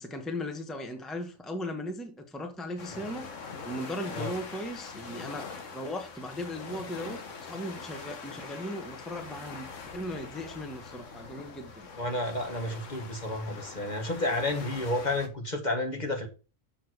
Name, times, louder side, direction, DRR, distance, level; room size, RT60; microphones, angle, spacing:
voice 1, 0.0-9.7 9.9-11.9, left 1 dB, ahead, 1.0 m, -37 dB
sound 1, 2.8-15.3, left 4 dB, 70° left, 1.6 m, -43 dB
voice 2, 12.0-16.3, left 1 dB, 35° left, 1.5 m, -31 dB
7.3 x 6.1 x 4.7 m
omnidirectional pair, 1.4 m